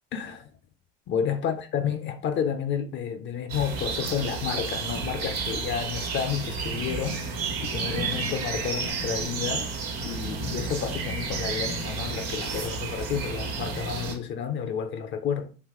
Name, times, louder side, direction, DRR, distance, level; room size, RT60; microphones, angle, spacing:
voice 1, 0.1-0.5 1.1-9.7 10.0-15.5, left 7 dB, 40° left, 0.4 m, -31 dB
sound 1, 3.5-14.1, right 4 dB, 75° right, 1.1 m, -31 dB
2.8 x 2.4 x 3.4 m
hypercardioid pair, 90°, 30 cm